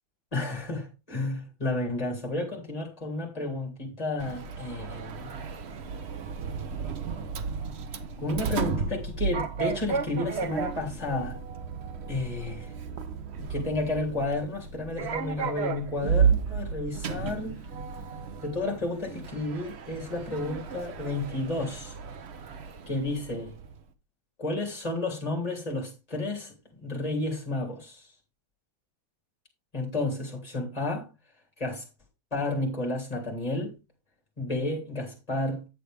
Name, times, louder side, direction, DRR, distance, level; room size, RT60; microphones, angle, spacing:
voice 1, 0.3-5.3 8.2-11.4 12.1-12.6 13.4-17.6 18.4-21.9 22.9-23.5 24.4-28.1 29.7-31.1 31.6-31.8 32.3-33.7 34.4-35.6, left 2 dB, 15° left, 3.2 m, -31 dB
Sliding door, 4.2-23.8, right 6 dB, 65° right, 0.6 m, -33 dB
9.9 x 7.9 x 3.5 m
omnidirectional pair, 2.2 m